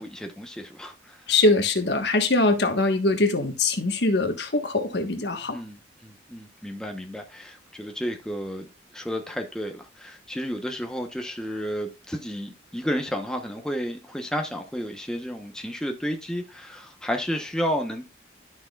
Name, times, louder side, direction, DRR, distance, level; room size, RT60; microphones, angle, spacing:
voice 1, 0.0-1.2 5.5-8.7 8.9-18.0, equal, 5° left, 0.9 m, -32 dB
voice 2, 1.3-5.6, left 2 dB, 65° left, 1.4 m, -22 dB
11.5 x 6.2 x 2.4 m
head